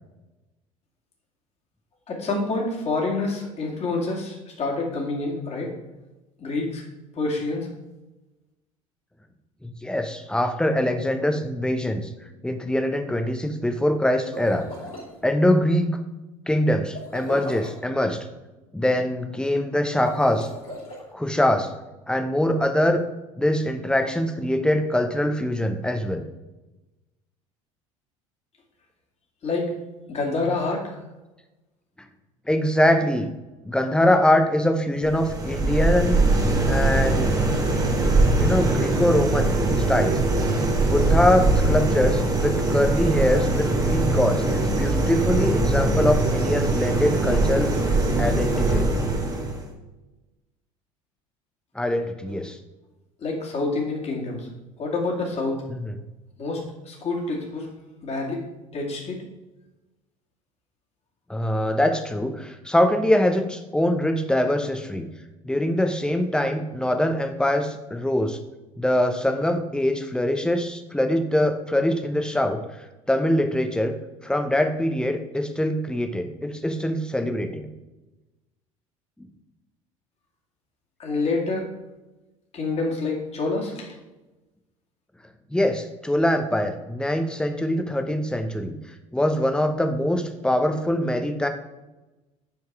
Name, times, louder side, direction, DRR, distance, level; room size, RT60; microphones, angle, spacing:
voice 1, 2.1-5.7 6.4-6.8 7.2-7.7 29.4-29.7 30.1-31.0 53.2-54.5 54.8-55.6 56.4-57.7 58.0-58.4 58.7-59.2 81.0-81.7 82.5-84.0, left 3 dB, 35° left, -1 dB, 2.3 m, -27 dB
voice 2, 9.6-12.1 12.4-14.7 15.2-16.0 16.5-18.3 18.7-20.5 21.1-21.7 22.1-23.0 23.4-26.2 32.5-33.3 33.6-36.2 36.7-37.3 38.4-39.5 39.8-40.2 40.9-47.7 48.2-48.9 51.7-52.6 55.7-55.9 61.3-65.1 65.4-68.4 68.8-72.6 73.1-73.9 74.2-77.7 79.2-79.3 85.5-88.8 89.1-91.5, left 1 dB, 5° left, 6 dB, 0.9 m, -23 dB
sound 1, 14.2-15.1 16.9-17.8 19.9-21.0, left 1 dB, 85° left, 2.9 m, -37 dB
sound 2, 35.0-49.7, right 2 dB, 20° right, 1.5 m, -22 dB
8.6 x 4.6 x 4.8 m, 1.1 s
figure-of-eight pair, 65°, 18 cm